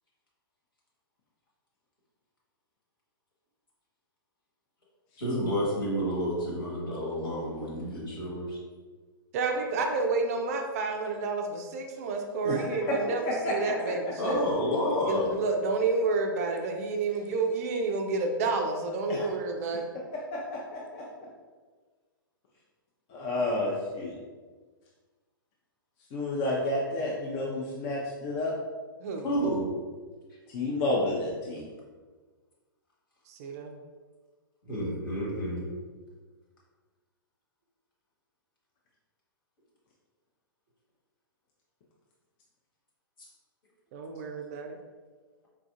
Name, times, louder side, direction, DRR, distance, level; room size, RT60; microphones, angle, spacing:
voice 1, 5.2-8.6 14.2-15.4 29.2-29.7 34.6-35.7, equal, 65° left, -5 dB, 1.4 m, -30 dB
voice 2, 9.3-14.4 15.0-19.8 29.0-29.3 33.3-33.7 43.9-44.8, right 3 dB, 40° right, 4 dB, 0.4 m, -30 dB
voice 3, 12.4-13.0 13.3-13.7 19.1-19.3 20.3-21.3 23.1-24.1 26.1-28.5 30.5-31.6, left 2 dB, 35° left, -4 dB, 0.5 m, -30 dB
4.3 x 2.4 x 2.5 m, 1.4 s
figure-of-eight pair, 110°, 12 cm